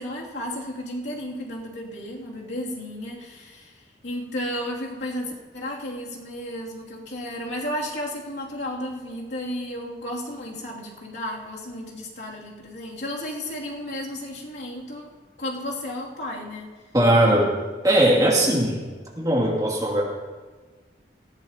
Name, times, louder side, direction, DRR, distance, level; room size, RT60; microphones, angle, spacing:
voice 1, 0.0-15.1 15.4-16.7, left 1 dB, 75° left, -4 dB, 2.8 m, -33 dB
voice 2, 16.9-17.5 17.8-18.8 19.2-20.0, right 1 dB, 20° right, -3 dB, 2.6 m, -19 dB
19.0 x 15.5 x 2.9 m, 1.4 s
head